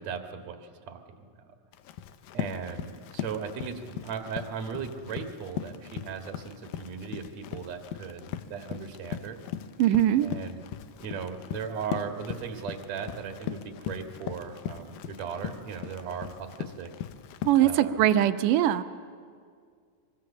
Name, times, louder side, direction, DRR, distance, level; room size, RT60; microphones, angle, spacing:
voice 1, 0.0-1.5 2.3-9.4 10.2-10.6 11.0-16.9 17.6-18.0, right 6 dB, 60° right, 4 dB, 2.8 m, -37 dB
Run, 1.7-17.7, left 10 dB, 90° left, 2.6 m, -39 dB
voice 2, 9.8-10.3 17.4-18.8, right 12 dB, 80° right, 10 dB, 2.4 m, -21 dB
24.0 x 24.0 x 7.2 m, 2.1 s
omnidirectional pair, 3.8 m